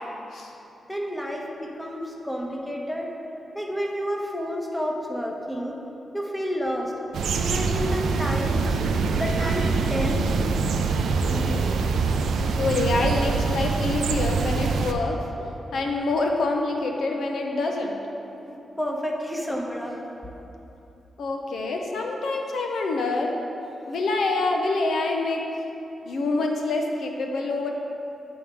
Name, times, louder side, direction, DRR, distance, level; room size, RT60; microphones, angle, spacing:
voice 1, 0.9-3.1 3.5-5.8 6.1-6.9 7.4-8.8 9.2-10.3 18.5-20.0, equal, 5° left, 0 dB, 1.0 m, -30 dB
sound 1, 7.1-14.9, right 4 dB, 85° right, 0.4 m, -24 dB
voice 2, 11.2-11.8 12.6-15.2 15.7-18.0 21.2-23.4 23.9-25.4 26.1-27.7, left 3 dB, 75° left, 2 dB, 0.6 m, -26 dB
9.9 x 3.6 x 4.8 m, 2.9 s
cardioid pair, 70°, 0 cm